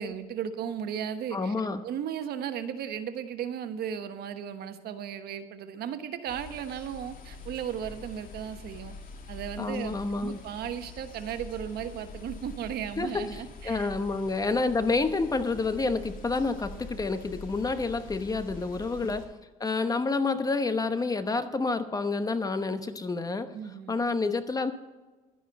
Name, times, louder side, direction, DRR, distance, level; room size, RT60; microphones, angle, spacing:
voice 1, 0.0-1.5 1.8-8.9 9.3-13.9 19.0-19.3 23.5-24.0, right 8 dB, 70° right, 9 dB, 1.2 m, -36 dB
voice 2, 1.3-1.8 9.6-10.4 13.0-13.2 13.6-19.3 19.6-23.5 23.9-24.7, left 3 dB, 20° left, 10 dB, 0.9 m, -28 dB
sound 1, 6.3-19.3, left 3 dB, 55° left, 2.5 m, -45 dB
12.0 x 10.0 x 5.3 m, 1.2 s
cardioid pair, 110°, 17 cm